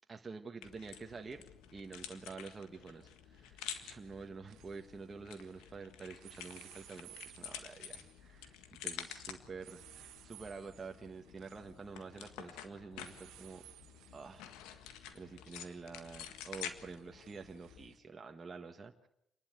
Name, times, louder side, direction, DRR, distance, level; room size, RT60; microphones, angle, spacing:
voice 1, 0.1-1.4 1.7-8.5 8.8-13.6 14.1-14.5 15.1-19.1, right 4 dB, 30° right, 3 dB, 1.6 m, -48 dB
sound 1, 0.6-18.0, left 9 dB, 85° left, 1.7 m, -50 dB
sound 2, 0.9-1.0 2.8-3.1 3.3-5.8 6.2-18.0, right 13 dB, 75° right, 1.2 m, -60 dB
28.0 x 11.5 x 8.2 m, 0.79 s
supercardioid pair, 70°, 0 cm